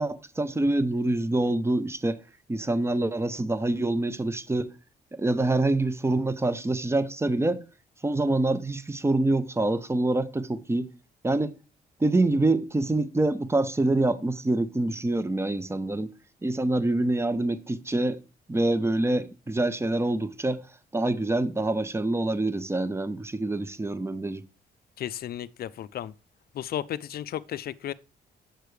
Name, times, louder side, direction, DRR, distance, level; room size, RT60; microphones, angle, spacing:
voice 1, 0.0-2.2 2.5-4.7 5.1-7.6 8.0-10.9 11.2-11.5 12.0-16.1 16.4-18.2 18.5-20.6 20.9-24.4, right 2 dB, 15° right, 0.6 m, -26 dB
voice 2, 25.0-26.1 26.5-27.9, left 11 dB, 55° left, 0.4 m, -34 dB
7.8 x 6.7 x 3.2 m
cardioid pair, 90°, 18 cm